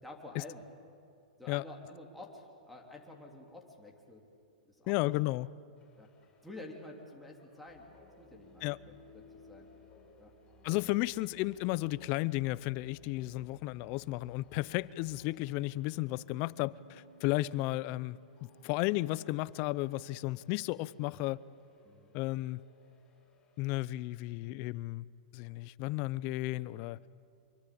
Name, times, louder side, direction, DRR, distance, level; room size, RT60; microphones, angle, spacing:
voice 1, 0.0-0.6 1.4-4.2 4.6-5.4 6.0-6.1 6.4-7.8 8.2-9.7 10.2-10.3 21.8-22.1, left 2 dB, ahead, 3.3 m, -50 dB
voice 2, 4.9-5.5 8.6-8.8 10.6-21.4 22.1-22.6 23.6-25.0 25.3-27.0, left 19 dB, 40° left, 0.6 m, -33 dB
sound 1, 5.8-23.8, left 2 dB, 15° left, 7.3 m, -61 dB
25.0 x 24.5 x 8.6 m
hypercardioid pair, 130°, 4 cm